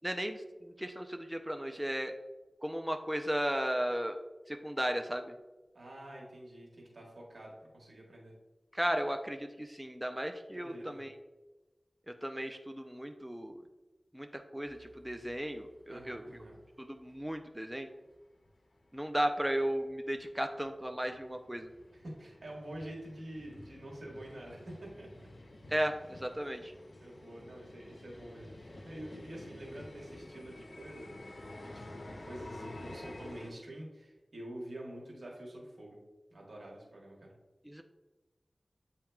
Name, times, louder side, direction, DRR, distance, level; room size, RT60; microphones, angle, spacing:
voice 1, 0.0-2.1 2.6-4.2 4.5-5.3 8.7-11.1 12.1-13.6 14.1-16.4 16.8-17.9 18.9-21.7 25.7-26.7 37.7-37.8, equal, 10° right, 5 dB, 0.4 m, -35 dB
voice 2, 5.7-8.3 10.5-11.1 15.9-16.6 21.9-25.3 26.0-26.1 27.0-31.1 31.5-36.0 36.3-37.3, right 1 dB, 85° right, -2 dB, 1.3 m, -47 dB
sound 1, 14.7-16.7 17.1-17.2 17.7-17.8 18.1-18.2 18.4-33.5, left 1 dB, 65° left, 0.5 m, -50 dB
8.4 x 2.8 x 2.3 m, 1.1 s
cardioid pair, 40°, 0 cm